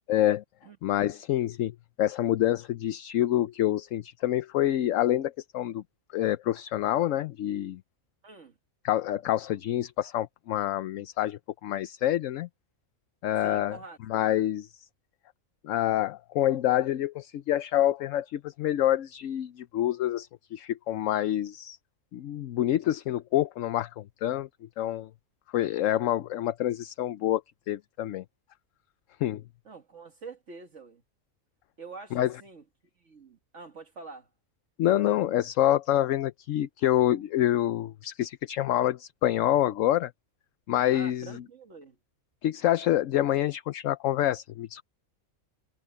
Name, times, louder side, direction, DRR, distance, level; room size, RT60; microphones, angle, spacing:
voice 1, 0.1-0.4 0.8-5.8 6.1-7.8 8.8-12.5 13.2-13.8 14.1-14.7 15.6-21.8 22.1-24.5 24.8-25.1 25.5-27.4 27.7-28.2 29.2-29.4 32.1-32.3 34.8-40.1 40.7-41.4 42.4-44.8, left 13 dB, 70° left, 1.0 m, -27 dB
voice 2, 8.2-8.5 13.4-14.0 29.7-31.0 31.8-32.6 33.0-34.3 40.9-42.0, right 4 dB, 60° right, 1.9 m, -46 dB
omnidirectional pair, 1.4 m